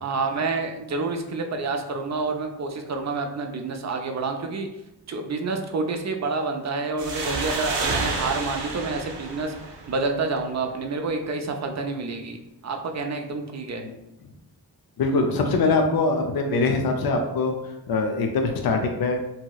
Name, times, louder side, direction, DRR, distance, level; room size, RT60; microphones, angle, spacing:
voice 1, 0.0-4.7 5.1-9.5 9.9-13.8, right 3 dB, 45° right, 4 dB, 0.5 m, -28 dB
sound 1, 7.0-10.4, right 3 dB, 85° right, 0.6 m, -30 dB
voice 2, 15.0-17.5 17.9-19.2, left 3 dB, 65° left, 3 dB, 0.5 m, -23 dB
2.9 x 2.8 x 2.2 m, 0.91 s
cardioid pair, 55°, 40 cm